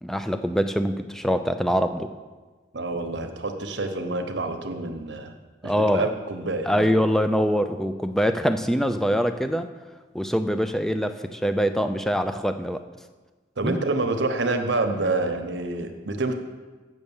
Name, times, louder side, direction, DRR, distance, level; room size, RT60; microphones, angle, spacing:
voice 1, 0.0-2.1 5.6-6.1 6.7-9.7 10.1-12.8 13.6-13.8, equal, ahead, 9 dB, 0.4 m, -24 dB
voice 2, 2.7-5.3 5.6-6.7 13.6-16.3, right 2 dB, 70° right, 6 dB, 0.9 m, -27 dB
8.0 x 6.3 x 7.1 m, 1.3 s
head